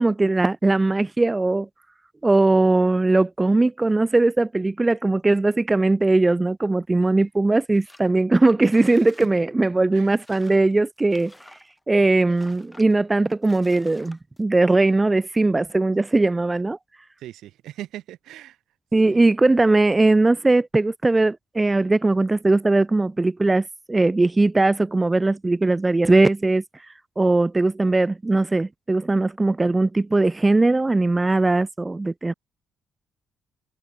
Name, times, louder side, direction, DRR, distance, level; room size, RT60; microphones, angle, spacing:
voice 1, 0.0-1.7 2.2-11.3 11.9-16.8 18.9-26.6 27.2-32.3, right 2 dB, 20° right, 0.3 m, -19 dB
sound 1, 7.7-8.1 8.4-9.3 9.6-9.7 10.1-12.0 12.4-12.9 13.4-14.4, left 1 dB, 10° left, 6.4 m, -50 dB
voice 2, 17.2-18.6 19.0-19.3, right 13 dB, 80° right, 6.1 m, -40 dB
cardioid pair, 90°, 0 cm